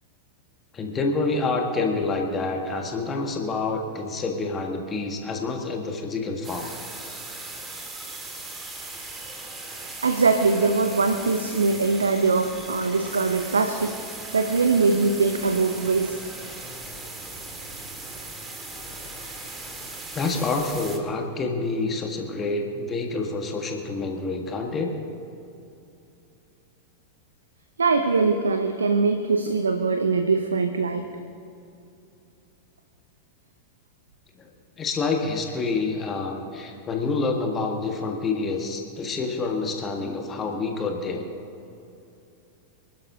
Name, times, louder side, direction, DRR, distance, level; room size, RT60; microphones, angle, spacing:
voice 1, 0.7-6.7 20.1-24.9 34.4-34.5 34.8-41.3, left 3 dB, 25° left, 2 dB, 1.7 m, -27 dB
sound 1, 6.4-21.0, right 2 dB, 15° right, 2.0 m, -38 dB
voice 2, 10.0-14.0 14.3-16.2 27.8-31.1, right 4 dB, 75° right, 8 dB, 0.8 m, -22 dB
27.0 x 12.0 x 2.8 m, 2.7 s
figure-of-eight pair, 90°, 0 cm